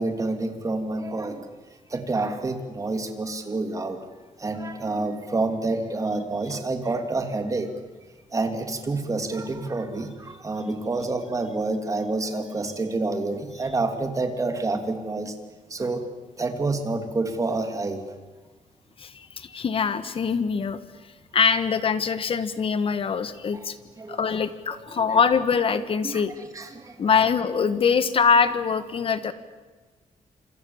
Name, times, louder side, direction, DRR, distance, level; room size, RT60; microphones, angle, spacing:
voice 1, 0.0-1.5 1.9-4.0 4.4-7.7 8.3-15.3 15.7-16.1 16.4-18.0 23.5-23.7 24.0-24.2 24.9-25.1 26.0-26.2 26.5-27.2, right 3 dB, 25° right, 6 dB, 2.9 m, -28 dB
voice 2, 19.0-20.8 21.3-23.7 24.1-26.3 27.0-29.3, left 6 dB, 45° left, 12 dB, 1.6 m, -23 dB
27.5 x 26.0 x 7.3 m, 1.3 s
wide cardioid pair, 155°, 14 cm